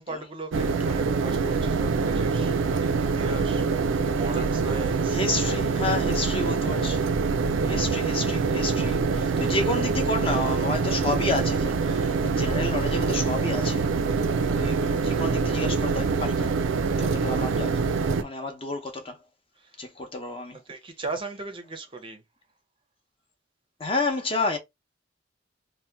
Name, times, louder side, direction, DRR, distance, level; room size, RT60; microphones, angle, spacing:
voice 1, 0.0-5.2 19.6-19.9 20.5-22.2, right 3 dB, 25° right, 0.5 m, -38 dB
sound 1, 0.5-18.2, right 4 dB, 85° right, 0.4 m, -25 dB
voice 2, 5.1-7.0 7.6-13.9 14.5-16.6 17.0-17.9 18.2-19.2 19.8-20.6 23.8-24.6, left 2 dB, 30° left, 0.7 m, -30 dB
2.8 x 2.1 x 3.3 m
head